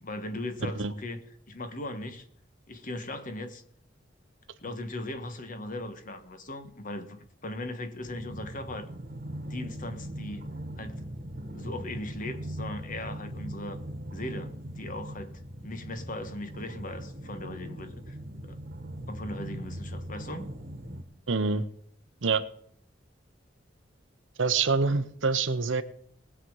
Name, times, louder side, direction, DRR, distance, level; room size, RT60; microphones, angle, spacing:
voice 1, 0.0-1.2 1.5-2.2 2.7-3.6 4.6-8.9 9.4-10.5 10.8-11.1 11.5-13.8 14.1-18.2 18.4-18.6 19.1-20.5, left 1 dB, 45° left, 1.5 m, -38 dB
sound 1, 8.0-21.0, right 1 dB, 50° right, 1.4 m, -40 dB
voice 2, 21.3-21.6 22.2-22.4 24.4-25.8, right 4 dB, 90° right, 0.9 m, -26 dB
20.5 x 7.5 x 4.8 m
head